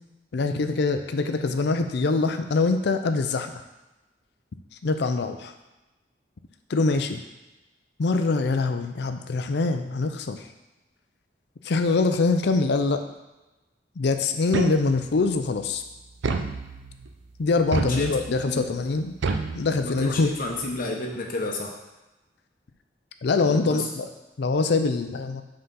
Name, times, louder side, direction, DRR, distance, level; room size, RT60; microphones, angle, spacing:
voice 1, 0.3-3.5 4.8-5.5 6.7-7.2 8.0-10.5 11.6-13.0 14.0-15.8 17.4-19.1 19.5-20.3 23.2-24.1 24.4-25.4, left 3 dB, 65° left, 7 dB, 0.5 m, -24 dB
sound 1, 14.5-15.2 16.2-17.1 17.7-18.5 19.2-20.2, right 4 dB, 85° right, 0.5 m, -29 dB
voice 2, 17.8-18.2 18.4-18.6 19.8-21.7 23.4-23.9, left 2 dB, 50° left, 0 dB, 1.0 m, -31 dB
5.6 x 3.9 x 5.5 m, 1.0 s
head